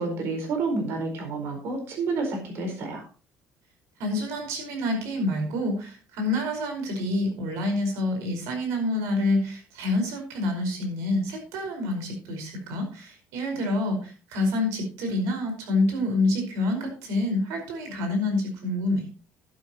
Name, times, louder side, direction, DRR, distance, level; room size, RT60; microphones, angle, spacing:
voice 1, 0.0-3.0, right 3 dB, 55° right, 4 dB, 4.6 m, -29 dB
voice 2, 4.0-19.0, left 2 dB, 80° right, 4 dB, 5.1 m, -27 dB
12.5 x 11.5 x 3.0 m, 0.37 s
cardioid pair, 170°, 5 cm